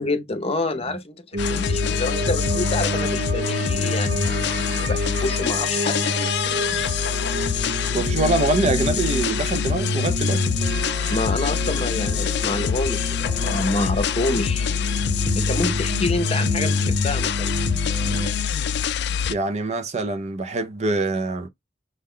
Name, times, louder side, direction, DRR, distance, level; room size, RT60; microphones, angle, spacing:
voice 1, 0.0-6.4 6.7-6.9 11.1-14.7 15.3-17.6, left 2 dB, 35° left, 0.7 m, -28 dB
sound 1, 1.3-18.3, right 2 dB, 80° right, 0.8 m, -30 dB
sound 2, 1.4-19.3, left 7 dB, 65° left, 0.4 m, -24 dB
voice 2, 7.9-10.4 19.3-21.5, right 2 dB, 40° right, 0.5 m, -24 dB
6.4 x 2.2 x 3.6 m
head